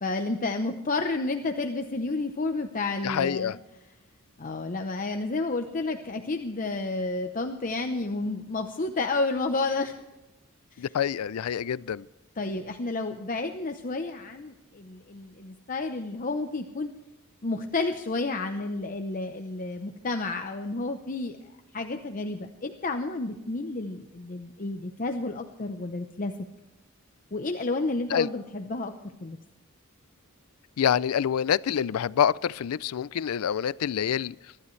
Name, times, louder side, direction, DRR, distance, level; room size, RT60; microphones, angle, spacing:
voice 1, 0.0-3.6 4.4-10.0 10.7-10.9 12.4-16.9 17.4-21.4 21.7-26.3 27.3-28.9 29.2-29.4, left 3 dB, 40° left, 5 dB, 0.8 m, -31 dB
voice 2, 3.0-3.6 10.8-12.1 28.1-28.3 30.8-34.3, left 8 dB, 85° left, 21 dB, 0.4 m, -26 dB
23.5 x 12.0 x 3.2 m, 1.0 s
head